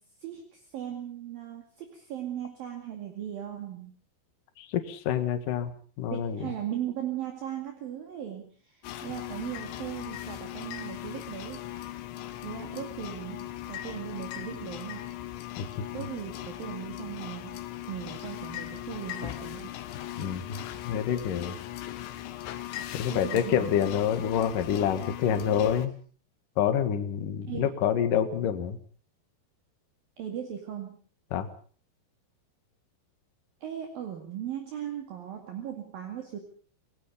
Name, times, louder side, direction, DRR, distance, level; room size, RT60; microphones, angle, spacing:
voice 1, 0.0-4.0 6.1-11.9 12.4-15.1 15.9-17.6 17.9-19.7 23.1-23.7 27.5-27.7 30.2-31.0 33.6-36.4, right 10 dB, 55° right, 3 dB, 3.8 m, -38 dB
voice 2, 4.6-5.7 6.0-6.4 15.6-15.7 20.2-21.6 23.0-26.0 26.6-28.8 31.3-31.5, left 9 dB, 55° left, 8 dB, 2.9 m, -27 dB
sound 1, 8.8-25.9, left 13 dB, 80° left, 3.6 m, -39 dB
28.0 x 19.5 x 5.2 m, 0.43 s
omnidirectional pair, 5.2 m